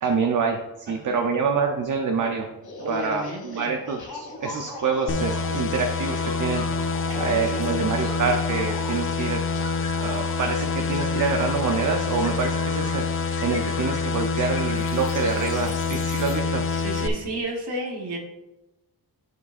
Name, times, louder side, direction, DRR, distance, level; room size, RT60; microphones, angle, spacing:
voice 1, 0.0-2.5 2.9-6.6 7.2-9.4 10.0-13.1 13.4-16.6, right 5 dB, 50° right, 3 dB, 0.6 m, -26 dB
voice 2, 0.9-1.3 2.8-3.7 7.1-7.9 16.6-18.2, right 1 dB, 75° right, 0 dB, 1.3 m, -33 dB
sound 1, 2.6-16.3, left 2 dB, 65° left, 2.0 m, -39 dB
sound 2, 5.1-17.1, left 4 dB, 35° left, 0.4 m, -26 dB
11.5 x 4.9 x 2.5 m, 1.0 s
wide cardioid pair, 135°, 40 cm